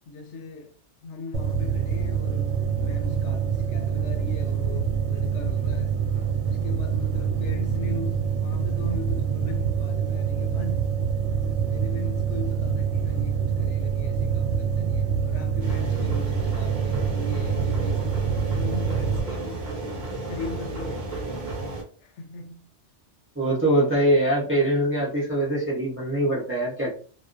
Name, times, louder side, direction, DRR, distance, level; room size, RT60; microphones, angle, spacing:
voice 1, 0.1-0.7 1.0-6.0 6.4-10.9 11.7-19.7 20.2-21.5 22.0-22.7, left 3 dB, 85° left, 1.0 m, -39 dB
sound 1, 1.3-19.2, right 7 dB, 80° right, 0.9 m, -26 dB
sound 2, 15.6-21.8, right 2 dB, 50° right, 0.7 m, -33 dB
voice 2, 23.4-26.9, right 1 dB, 15° right, 0.5 m, -23 dB
2.3 x 2.3 x 2.4 m
omnidirectional pair, 1.2 m